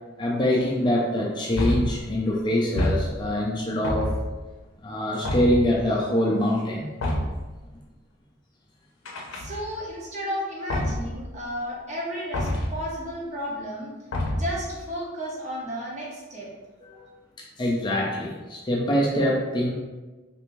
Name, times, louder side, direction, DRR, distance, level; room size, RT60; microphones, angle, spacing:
voice 1, 0.2-4.1 4.8-6.9 16.8-17.1 17.6-19.7, left 1 dB, 25° left, -3 dB, 0.4 m, -24 dB
sound 1, 1.6-2.1 2.8-3.4 3.8-4.5 5.3-5.8 7.0-7.5 9.1-9.9 10.7-11.2 12.3-12.9 14.1-14.7, left 1 dB, 85° left, 0.5 m, -27 dB
voice 2, 9.3-13.9 14.3-16.5, equal, 35° right, -4 dB, 0.8 m, -33 dB
3.3 x 2.6 x 3.0 m, 1.2 s
head